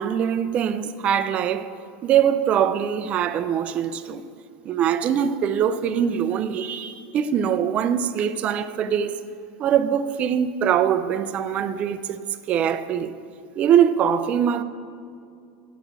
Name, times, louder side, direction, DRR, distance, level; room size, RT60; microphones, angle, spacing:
voice 1, 0.0-1.7 2.0-4.3 4.6-9.2 9.6-12.2 12.5-13.1 13.6-14.6, right 9 dB, 40° right, 0.5 m, -22 dB
7.9 x 6.0 x 7.4 m
supercardioid pair, 110°, 3 cm